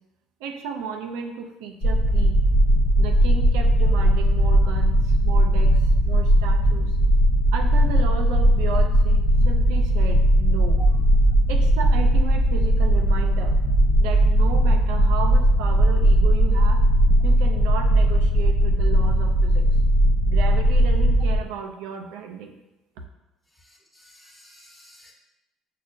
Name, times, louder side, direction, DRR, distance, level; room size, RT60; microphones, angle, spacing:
voice 1, 0.4-2.4 2.7-5.8 6.0-6.9 7.5-11.0 11.5-13.6 14.0-16.8 17.2-19.6 20.3-22.6, right 6 dB, 85° right, 3 dB, 0.4 m, -34 dB
sound 1, 1.8-21.4, equal, 60° left, 0.7 m, -18 dB
voice 2, 23.6-25.1, left 1 dB, 5° left, -2 dB, 1.1 m, -53 dB
6.2 x 2.2 x 2.5 m, 0.99 s
supercardioid pair, 80°, 0 cm